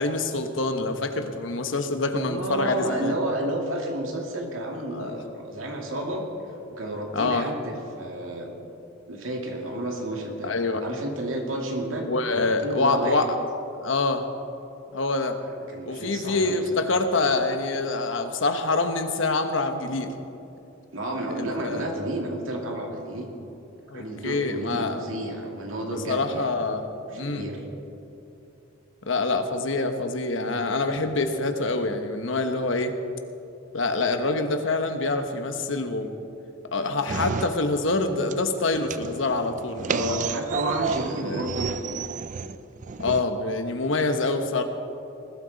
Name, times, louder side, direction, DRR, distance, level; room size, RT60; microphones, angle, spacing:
voice 1, 0.0-3.1 4.9-5.1 7.1-7.5 10.4-10.8 12.1-13.3 13.8-14.2 14.9-15.4 15.8-20.1 21.4-21.8 23.9-25.1 25.8-26.8 27.1-27.4 29.0-32.9 33.7-36.1 36.7-40.2 41.2-41.4 43.0-44.6, left 3 dB, 70° left, 7 dB, 1.1 m, -26 dB
voice 2, 2.2-6.3 6.7-8.5 9.1-10.5 10.8-13.2 15.5-16.8 20.9-23.3 23.9-26.6 27.1-27.6 39.9-42.0, right 1 dB, 85° right, 1 dB, 2.2 m, -31 dB
sound 1, 37.1-38.0 38.3-43.2, right 5 dB, 40° right, 0.4 m, -31 dB
20.0 x 12.5 x 4.1 m, 2.8 s
head